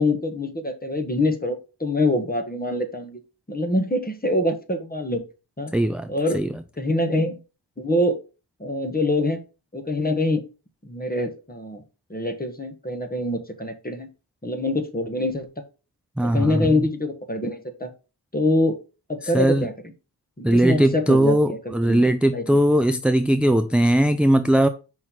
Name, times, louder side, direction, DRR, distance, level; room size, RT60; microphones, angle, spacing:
voice 1, 0.0-3.2 3.5-5.2 5.6-5.7 6.1-6.4 6.8-7.4 7.8-8.2 8.6-9.4 9.7-10.4 10.8-11.8 12.1-14.1 14.4-15.6 16.2-17.9 18.3-18.8 19.1-19.7 20.4-22.4, left 1 dB, 20° left, 1.3 m, -25 dB
voice 2, 5.7-6.1 6.3-6.5 16.2-16.7 19.3-19.7 20.4-24.7, right 1 dB, 5° right, 0.4 m, -19 dB
5.4 x 4.0 x 4.5 m
wide cardioid pair, 60°, 44 cm